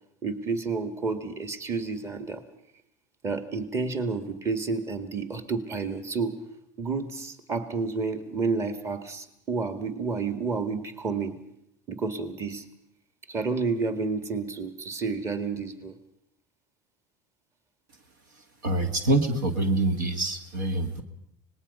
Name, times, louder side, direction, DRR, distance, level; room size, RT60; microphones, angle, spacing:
voice 1, 0.2-2.4 3.2-6.4 6.8-11.4 11.9-12.6 13.3-15.9, right 4 dB, 30° right, 10 dB, 2.0 m, -30 dB
voice 2, 18.6-21.0, right 2 dB, 90° right, 8 dB, 2.1 m, -25 dB
25.5 x 19.5 x 5.6 m, 0.75 s
supercardioid pair, 100°, 10 cm